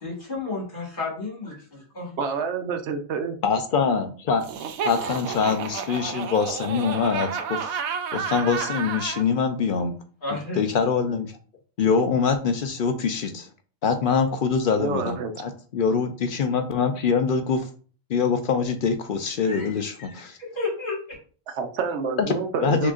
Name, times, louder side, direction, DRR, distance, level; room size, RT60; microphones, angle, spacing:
voice 1, 0.0-1.7 1.9-2.1 10.2-10.6 19.4-21.2, left 3 dB, 40° left, -2 dB, 1.7 m, -32 dB
voice 2, 2.2-3.4 14.8-15.3 21.5-22.9, right 5 dB, 65° right, 7 dB, 0.8 m, -28 dB
voice 3, 3.4-4.4 4.8-7.8 8.1-9.9 10.6-11.3 11.8-13.5 13.8-17.7 18.1-20.4 22.6-22.9, left 5 dB, 65° left, 7 dB, 0.5 m, -24 dB
Laughter, 4.4-9.2, right 6 dB, 85° right, 1.0 m, -31 dB
6.1 x 2.9 x 2.4 m, 0.40 s
omnidirectional pair, 1.4 m